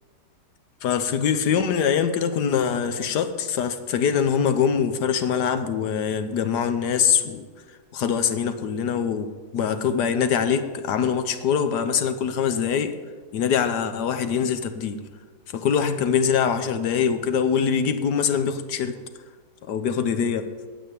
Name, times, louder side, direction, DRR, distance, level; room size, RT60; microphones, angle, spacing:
voice 1, 0.8-9.3 9.5-13.0 13.3-15.0 15.5-19.0 19.7-20.5, left 7 dB, 75° left, 10 dB, 1.4 m, -23 dB
9.1 x 8.3 x 9.4 m, 1.4 s
omnidirectional pair, 1.8 m